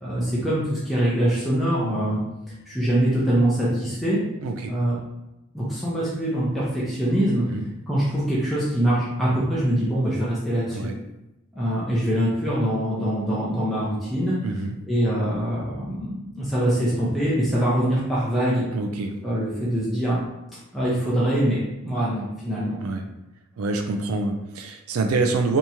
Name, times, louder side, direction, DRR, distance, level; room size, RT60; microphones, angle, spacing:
voice 1, 0.0-2.2 2.7-4.2 4.7-5.0 5.5-7.4 7.9-10.9 11.5-14.3 14.8-18.7 19.2-20.2 20.7-22.8, right 1 dB, ahead, -9 dB, 0.6 m, -23 dB
voice 2, 4.4-4.7 7.5-7.7 10.7-10.9 14.4-14.8 18.7-19.1 22.8-23.1 23.6-25.6, right 3 dB, 85° right, 5 dB, 0.4 m, -26 dB
3.4 x 2.9 x 2.8 m, 0.94 s
head